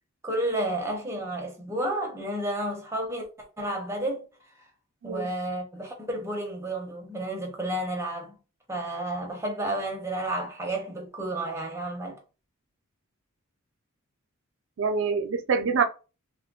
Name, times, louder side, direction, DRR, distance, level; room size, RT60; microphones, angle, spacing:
voice 1, 0.2-3.3 3.6-4.3 5.0-8.3 8.7-12.2, right 1 dB, 15° right, 0.7 m, -31 dB
voice 2, 14.8-15.8, right 5 dB, 60° right, 0.4 m, -25 dB
2.4 x 2.1 x 3.6 m
head